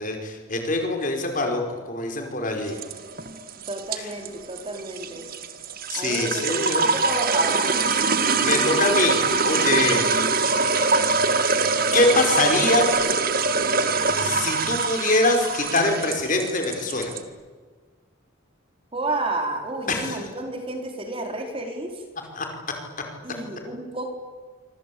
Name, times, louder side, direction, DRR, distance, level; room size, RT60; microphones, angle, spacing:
voice 1, 0.0-2.8 4.0-4.1 5.9-6.8 8.4-10.1 10.9-11.3 11.9-12.9 14.2-17.1 19.9-20.2 22.3-22.5, left 2 dB, 40° left, 3 dB, 4.9 m, -24 dB
sound 1, 2.7-17.2, right 4 dB, 45° right, 1.8 m, -23 dB
voice 2, 3.7-5.2 5.9-7.7 18.9-22.0 23.2-24.1, right 2 dB, 25° right, 3 dB, 4.3 m, -31 dB
26.5 x 26.0 x 8.6 m, 1.5 s
head